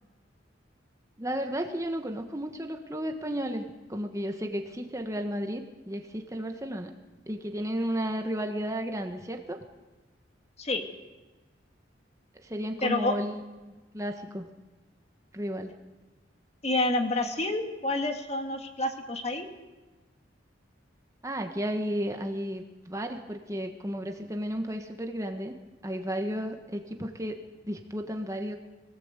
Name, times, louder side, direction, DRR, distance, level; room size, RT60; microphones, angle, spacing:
voice 1, 1.2-6.9 7.3-9.6 12.4-14.5 15.3-15.7 21.2-25.5 25.8-28.6, equal, 15° right, 4 dB, 1.4 m, -33 dB
voice 2, 12.8-13.2 16.6-19.5, left 2 dB, 35° left, 5 dB, 2.2 m, -28 dB
23.0 x 17.5 x 8.3 m, 1.2 s
head